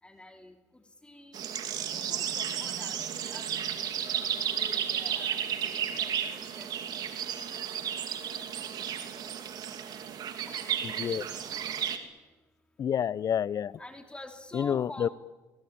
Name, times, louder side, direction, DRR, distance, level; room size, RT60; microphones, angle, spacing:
voice 1, 0.0-1.5 1.9-3.9 4.5-6.1 6.6-6.7 13.8-15.1, left 1 dB, 15° left, 4 dB, 3.1 m, -48 dB
sound 1, 1.3-12.0, right 9 dB, 60° right, 2.8 m, -33 dB
voice 2, 10.8-11.3 12.8-13.7 14.5-15.1, left 8 dB, 50° left, 21 dB, 0.8 m, -29 dB
23.5 x 22.5 x 8.9 m, 1.2 s
hypercardioid pair, 60°, 8 cm